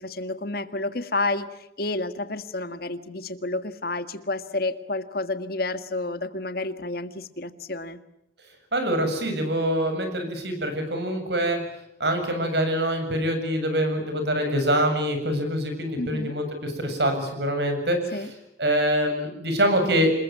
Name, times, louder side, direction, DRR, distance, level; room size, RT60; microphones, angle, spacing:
voice 1, 0.0-8.0 16.0-16.4 18.1-18.3, left 2 dB, 55° left, 10 dB, 1.7 m, -30 dB
voice 2, 8.7-11.6 12.0-18.3 18.6-20.1, equal, 65° right, 7 dB, 7.4 m, -25 dB
27.5 x 21.5 x 9.2 m, 0.81 s
head